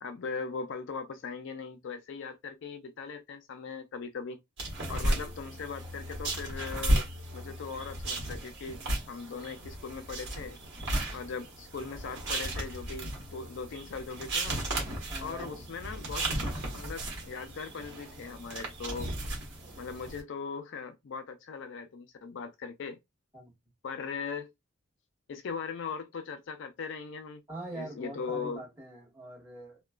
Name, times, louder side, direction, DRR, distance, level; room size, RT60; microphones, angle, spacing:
voice 1, 0.0-4.4 4.9-7.1 7.3-8.8 9.1-10.6 11.1-14.6 15.2-16.3 16.7-19.1 19.8-23.0 23.8-24.5 25.3-27.4 27.7-28.6, left 5 dB, 60° left, 0.4 m, -39 dB
sound 1, 4.6-20.2, right 1 dB, 60° right, 1.2 m, -35 dB
voice 2, 4.8-5.3 10.8-11.2 15.1-15.6 23.3-23.5 27.5-29.8, right 1 dB, 10° right, 1.5 m, -44 dB
2.9 x 2.1 x 2.3 m
head